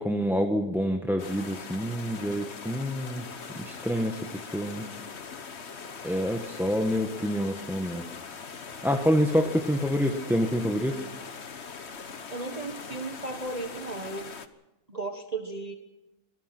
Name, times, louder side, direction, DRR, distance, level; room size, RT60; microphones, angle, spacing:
voice 1, 0.0-3.3 3.6-4.9 6.0-8.0 8.8-11.0, equal, ahead, 4 dB, 1.4 m, -27 dB
sound 1, 1.2-14.5, left 5 dB, 50° left, 1.5 m, -41 dB
voice 2, 12.3-14.3 14.9-15.7, right 3 dB, 30° right, 5 dB, 1.4 m, -35 dB
25.5 x 18.5 x 6.1 m, 0.94 s
omnidirectional pair, 1.5 m